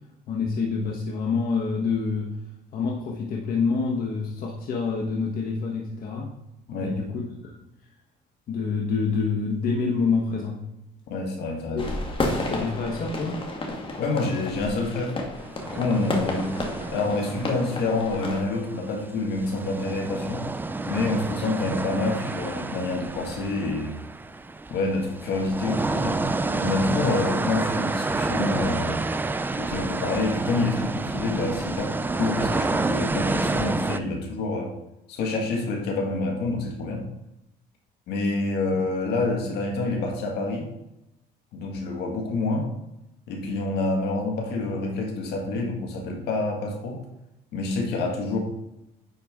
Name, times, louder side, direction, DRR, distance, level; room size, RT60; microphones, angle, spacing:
voice 1, 0.3-2.3 2.7-6.3 6.8-7.5 8.5-10.6 11.7-11.9 12.5-13.4, left 4 dB, 60° left, -2 dB, 1.3 m, -27 dB
voice 2, 6.7-7.0 11.1-11.9 14.0-15.1 15.6-16.6 16.9-20.5 20.8-24.0 24.7-26.2 26.5-29.0 29.6-34.7 35.1-37.1 38.1-40.7 41.5-42.7 43.3-47.0 47.5-48.4, left 3 dB, 75° left, 1 dB, 1.9 m, -27 dB
sound 1, 11.8-18.4, left 2 dB, 30° left, 1.6 m, -32 dB
sound 2, 15.6-19.0 19.4-34.0, right 3 dB, 10° right, 0.3 m, -29 dB
9.8 x 4.4 x 3.7 m, 0.89 s
cardioid pair, 110°, 17 cm